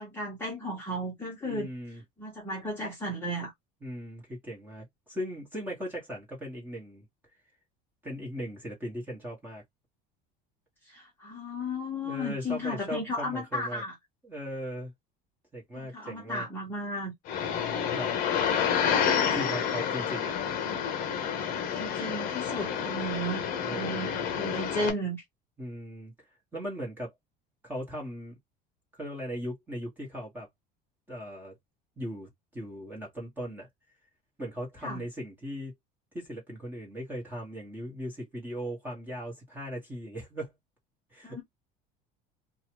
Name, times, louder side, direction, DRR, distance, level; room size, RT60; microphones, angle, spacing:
voice 1, 0.0-1.7 2.2-3.5 10.9-13.9 15.7-17.1 21.7-23.5 23.7-25.2 34.8-35.0 41.2-41.4, equal, 10° left, 1.2 m, -34 dB
voice 2, 1.4-2.0 3.8-7.1 8.0-9.6 12.0-13.8 14.2-14.9 15.5-16.5 17.9-18.1 19.3-20.3 21.1-21.2 23.6-24.3 25.6-26.1 26.5-27.1 27.6-28.4 28.9-30.5 31.1-31.5 32.0-33.7 34.4-35.7 36.1-40.5 41.1-41.4, equal, 10° right, 1.3 m, -38 dB
sound 1, 17.3-24.9, left 8 dB, 45° left, 0.8 m, -29 dB
2.9 x 2.4 x 2.9 m
cardioid pair, 175°, 21 cm